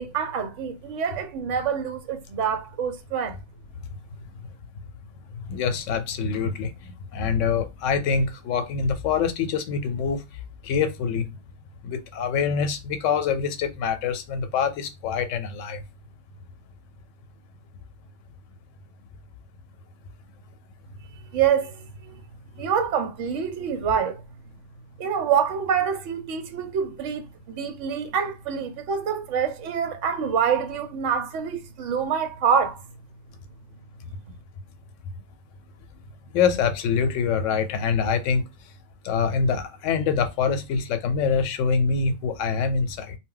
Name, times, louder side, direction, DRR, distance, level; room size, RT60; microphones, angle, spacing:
voice 1, 0.0-3.4 21.3-22.2 22.6-24.2 25.0-32.8, right 7 dB, 80° right, 0.9 m, -26 dB
voice 2, 5.5-10.2 10.6-11.2 11.8-15.8 36.3-38.4 39.0-43.1, left 6 dB, 85° left, 0.9 m, -25 dB
2.2 x 2.1 x 3.7 m
omnidirectional pair, 1.3 m